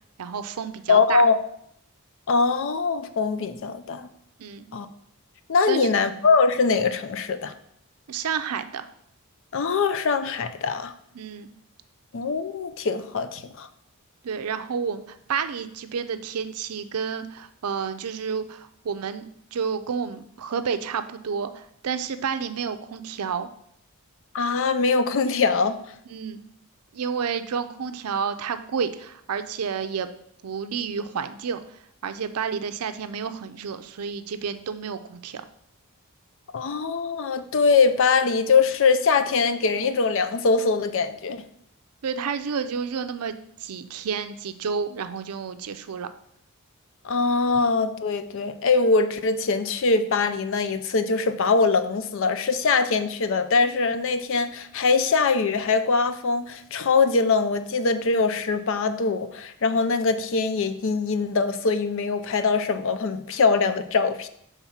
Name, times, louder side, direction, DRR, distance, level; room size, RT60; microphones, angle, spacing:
voice 1, 0.2-1.2 4.4-4.7 5.7-5.9 8.1-8.9 11.1-11.5 14.2-23.5 26.1-26.4 26.9-30.1 30.4-31.6 32.0-35.4 42.0-46.1, right 6 dB, 80° right, 10 dB, 0.5 m, -30 dB
voice 2, 0.9-1.4 2.3-4.1 4.7-4.9 5.5-7.5 9.5-10.9 12.1-13.7 24.3-25.8 36.5-41.4 47.0-64.3, left 4 dB, 60° left, 11 dB, 0.5 m, -22 dB
6.0 x 3.6 x 5.6 m, 0.70 s
head